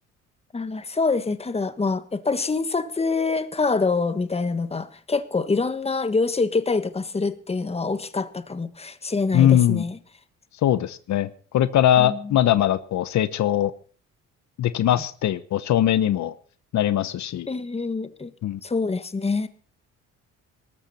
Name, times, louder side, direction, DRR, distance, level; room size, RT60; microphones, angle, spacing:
voice 1, 0.5-10.0 12.0-12.3 17.5-18.3 18.6-19.5, left 4 dB, 20° left, 11 dB, 1.5 m, -25 dB
voice 2, 9.3-9.8 10.6-13.7 14.6-16.3 16.7-17.5 18.4-18.6, left 11 dB, 65° left, 14 dB, 1.0 m, -21 dB
19.0 x 13.5 x 4.3 m, 0.42 s
cardioid pair, 90°, 31 cm